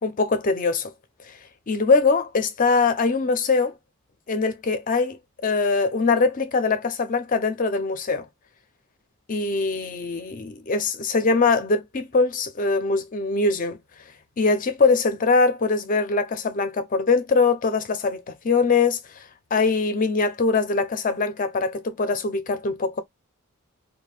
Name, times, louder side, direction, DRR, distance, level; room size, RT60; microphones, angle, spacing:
voice 1, 0.0-0.9 1.3-1.4 1.7-3.7 4.3-8.3 9.3-13.8 14.4-19.0 19.5-23.0, left 4 dB, 40° left, 0.5 m, -22 dB
2.5 x 2.1 x 3.3 m
head